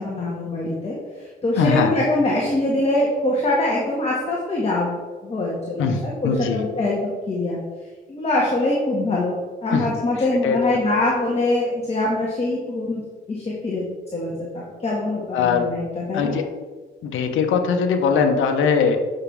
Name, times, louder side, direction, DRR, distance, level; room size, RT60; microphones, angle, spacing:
voice 1, 0.0-5.9 6.2-7.6 8.1-13.0 13.3-13.9 14.1-16.4, left 2 dB, 30° left, -4 dB, 1.8 m, -23 dB
voice 2, 1.6-1.9 5.8-6.7 9.7-9.9 10.4-10.6 15.3-15.7 16.1-16.5 17.0-19.0, left 6 dB, 80° left, 5 dB, 1.1 m, -21 dB
8.9 x 6.2 x 3.5 m, 1.3 s
cardioid pair, 90°, 20 cm